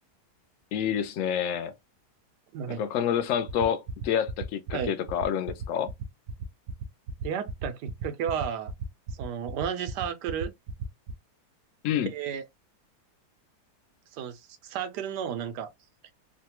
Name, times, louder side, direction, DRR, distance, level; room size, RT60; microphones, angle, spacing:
voice 1, 0.7-1.7 2.7-5.9 11.8-12.1, left 8 dB, 65° left, 0.8 m, -28 dB
sound 1, 3.5-11.1, right 7 dB, 70° right, 0.9 m, -35 dB
voice 2, 7.2-8.7 9.1-10.5 12.1-12.4 14.1-15.7, right 8 dB, 90° right, 1.2 m, -33 dB
3.2 x 2.2 x 2.8 m
omnidirectional pair, 1.8 m